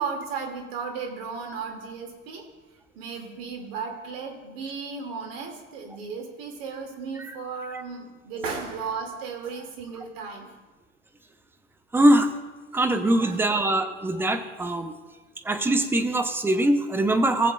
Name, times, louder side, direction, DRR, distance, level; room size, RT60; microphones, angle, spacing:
voice 1, 0.0-2.5 3.0-10.5 13.2-13.4, right 5 dB, 50° right, 3 dB, 2.2 m, -35 dB
voice 2, 11.9-12.3 12.7-14.9 15.5-17.5, right 1 dB, 5° right, 8 dB, 0.6 m, -22 dB
20.0 x 7.1 x 2.3 m, 1.3 s
hypercardioid pair, 95°, 38 cm